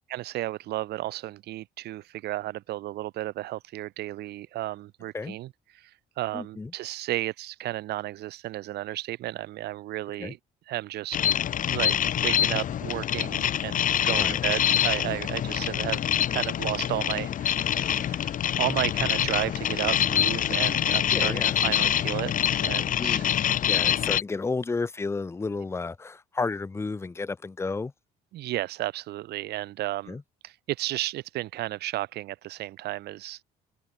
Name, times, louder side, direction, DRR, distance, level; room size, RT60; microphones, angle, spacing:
voice 1, 0.1-10.4 10.7-11.2 11.7-12.0 12.2-23.3 28.3-30.2 30.4-33.4, right 16 dB, 75° right, 2.0 m, -33 dB
voice 2, 6.3-6.7 10.2-10.3 14.2-14.4 17.8-18.1 21.1-21.6 23.0-27.9 30.1-30.2, left 4 dB, 15° left, 0.8 m, -32 dB
sound 1, 11.1-24.2, left 10 dB, 50° left, 1.5 m, -25 dB
open air
cardioid pair, 110°, 17 cm